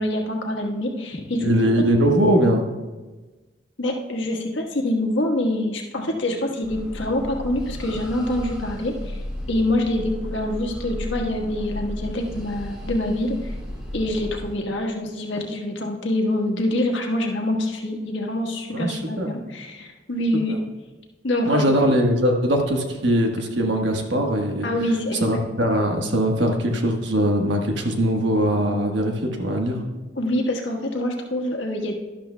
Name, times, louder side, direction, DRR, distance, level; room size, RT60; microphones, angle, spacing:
voice 1, 0.0-1.5 1.8-1.9 3.8-9.2 9.5-13.5 13.9-20.5 21.2-21.6 24.6-25.4 30.1-31.9, left 1 dB, 80° left, 1 dB, 1.4 m, -25 dB
voice 2, 1.4-2.6 18.7-19.3 20.5-20.6 21.5-24.7 25.2-29.8, equal, 70° right, 2 dB, 1.3 m, -21 dB
sound 1, 6.6-14.5, equal, 5° right, 2.2 m, -34 dB
12.0 x 12.0 x 2.2 m, 1.2 s
head